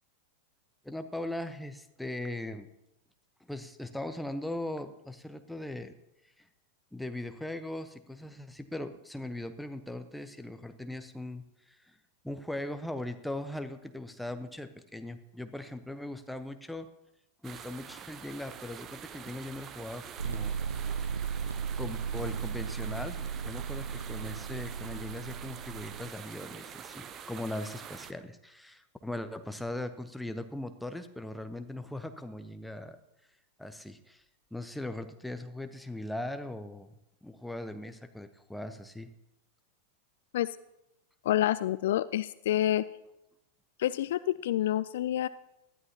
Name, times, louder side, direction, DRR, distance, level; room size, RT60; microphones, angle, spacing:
voice 1, 0.8-2.7 3.5-5.9 6.4-6.5 6.9-12.0 12.2-16.9 17.4-20.6 21.8-33.0 33.6-34.2 34.5-36.9 37.2-39.1, left 1 dB, ahead, 8 dB, 0.9 m, -39 dB
sound 1, 17.4-28.1, right 8 dB, 30° right, 0.8 m, -46 dB
sound 2, 20.2-26.1, right 6 dB, 75° right, 0.3 m, -36 dB
voice 2, 41.2-42.9 43.8-45.3, left 13 dB, 55° left, 17 dB, 0.3 m, -28 dB
19.0 x 12.5 x 2.9 m, 0.90 s
figure-of-eight pair, 90°, 0 cm